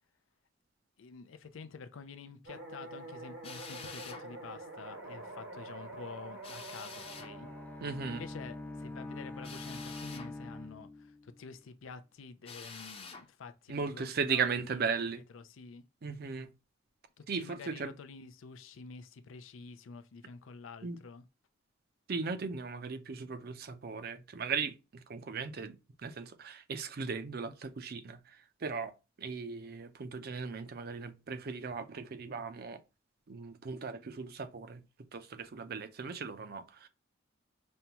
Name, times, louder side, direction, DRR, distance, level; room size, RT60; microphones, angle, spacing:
voice 1, 1.0-7.5 8.1-15.8 17.2-21.3, left 4 dB, 85° left, 0.5 m, -49 dB
sound 1, 2.5-9.4, right 2 dB, 90° right, 1.6 m, -47 dB
Drill, 3.4-4.3 6.4-7.3 9.4-10.3 12.4-13.3, left 5 dB, 30° left, 0.7 m, -47 dB
Bowed string instrument, 6.8-11.5, left 2 dB, 10° left, 0.3 m, -45 dB
voice 2, 7.8-8.2 13.7-15.2 16.0-16.5 17.3-17.9 20.8-21.0 22.1-32.8 33.3-34.8 35.1-36.9, right 5 dB, 50° right, 0.5 m, -37 dB
5.3 x 2.3 x 2.9 m
head